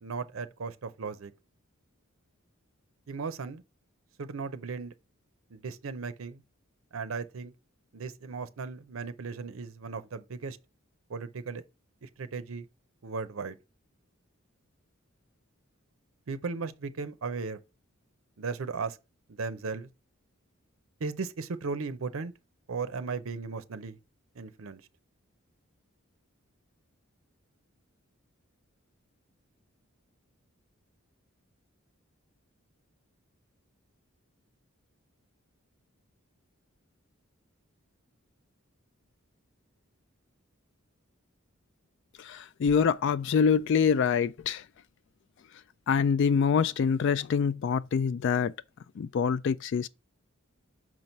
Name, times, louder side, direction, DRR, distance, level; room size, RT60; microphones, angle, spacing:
voice 1, 0.0-1.3 3.1-3.6 4.2-4.9 5.5-6.4 6.9-7.5 7.9-10.6 11.1-11.6 12.0-12.7 13.0-13.6 16.3-17.6 18.4-19.0 19.3-19.9 21.0-22.3 22.7-24.0 24.4-24.8, right 4 dB, 75° right, 0.6 m, -36 dB
voice 2, 42.2-44.6 45.9-48.5 49.0-49.9, left 6 dB, 60° left, 0.3 m, -25 dB
6.2 x 4.5 x 5.2 m
head